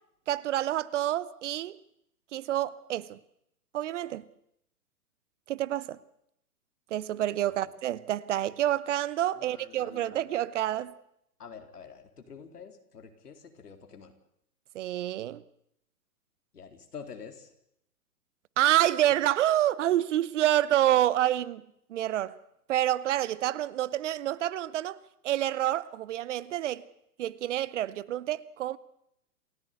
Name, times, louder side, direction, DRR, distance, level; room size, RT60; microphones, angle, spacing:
voice 1, 0.3-1.8 2.3-3.2 3.7-4.2 5.5-6.0 6.9-10.9 14.7-15.4 18.6-21.6 21.9-22.4 22.7-25.0 25.2-26.8 27.2-28.8, right 13 dB, 50° right, 1.0 m, -28 dB
voice 2, 9.3-10.4 11.4-14.1 16.5-17.5, left 6 dB, 80° left, 4.0 m, -47 dB
28.5 x 15.5 x 8.2 m
hypercardioid pair, 120°, 46 cm